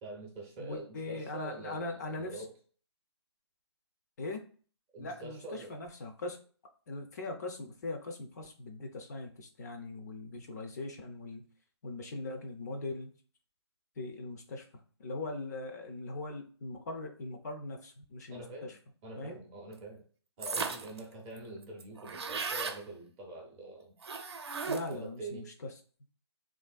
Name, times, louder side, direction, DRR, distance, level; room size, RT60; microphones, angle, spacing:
voice 1, 0.0-2.6 4.9-5.8 18.3-18.7 19.0-20.0 20.4-24.0 24.9-25.5, right 2 dB, 15° right, -1 dB, 0.5 m, -45 dB
voice 2, 0.6-2.4 4.2-4.4 5.0-6.4 6.9-11.4 11.8-13.1 14.0-14.7 15.0-18.7 19.2-19.4 24.6-25.4, left 2 dB, 35° left, 4 dB, 0.4 m, -40 dB
sound 1, 20.4-21.0 21.4-21.5 21.6-22.8 24.0-25.0, right 4 dB, 65° right, 0.6 m, -36 dB
3.1 x 2.5 x 2.3 m, 0.42 s
figure-of-eight pair, 150°, 15 cm